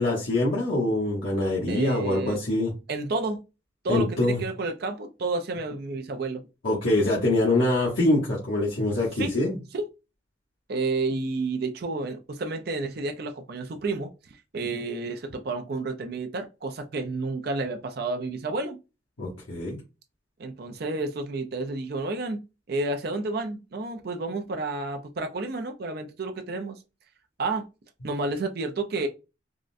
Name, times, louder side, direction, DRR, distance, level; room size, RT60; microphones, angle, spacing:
voice 1, 0.0-2.7 3.9-4.4 6.6-9.6 19.2-19.8, left 2 dB, 85° left, 0.9 m, -24 dB
voice 2, 1.7-2.4 2.9-3.4 3.8-6.4 9.2-9.4 9.7-9.9 10.7-14.1 14.5-18.8 20.4-22.4 22.7-26.8 27.4-27.7 28.0-29.1, right 3 dB, 50° right, 0.4 m, -30 dB
3.6 x 2.1 x 2.5 m
head